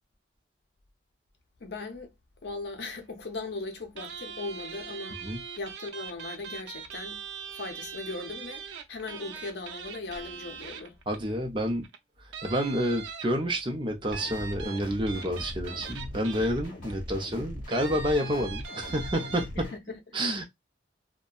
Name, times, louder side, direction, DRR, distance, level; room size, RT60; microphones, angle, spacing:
voice 1, 1.6-2.1 2.4-5.3 5.6-7.3 7.5-11.0 19.5-20.0, left 3 dB, 65° left, 0.6 m, -38 dB
sound 1, 4.0-11.4 11.8-12.0 12.3-13.6 14.1-16.9 17.7-19.5, right 6 dB, 90° right, 0.5 m, -41 dB
voice 2, 11.1-11.8 12.4-19.7 20.1-20.4, equal, 25° right, 0.6 m, -29 dB
sound 2, 14.1-19.8, equal, 45° left, 1.1 m, -41 dB
2.7 x 2.1 x 2.3 m
head